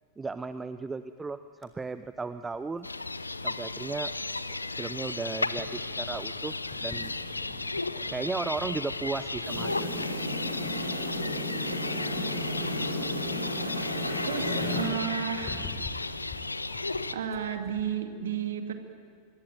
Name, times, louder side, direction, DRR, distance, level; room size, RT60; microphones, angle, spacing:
voice 1, 0.2-2.9 3.4-4.1 4.8-6.5 6.8-7.1 8.1-10.3, right 4 dB, 10° right, 12 dB, 0.6 m, -35 dB
sound 1, 1.6-17.9, left 3 dB, 25° left, 4.0 m, -49 dB
sound 2, 2.8-17.2, left 3 dB, 80° left, 0.7 m, -34 dB
sound 3, 9.4-14.8, left 1 dB, 90° right, 4.0 m, -33 dB
voice 2, 14.3-15.7 17.1-18.7, right 8 dB, 65° right, 6 dB, 2.3 m, -32 dB
25.0 x 22.0 x 9.2 m, 2.1 s
figure-of-eight pair, 90°, 0 cm